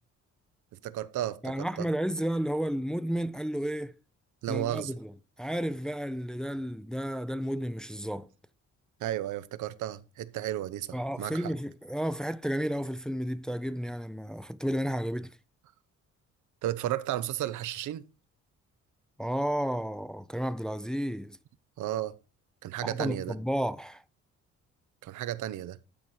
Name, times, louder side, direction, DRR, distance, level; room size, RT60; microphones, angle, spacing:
voice 1, 0.8-1.9 4.4-4.9 9.0-11.5 16.6-18.0 21.8-22.2 22.6-23.4 25.0-25.8, right 13 dB, 80° right, 0.7 m, -33 dB
voice 2, 1.4-3.9 4.5-5.1 5.4-8.3 10.9-15.4 19.2-21.4 22.8-24.0, equal, ahead, 0.5 m, -32 dB
12.0 x 4.2 x 4.7 m
cardioid pair, 90°, 30 cm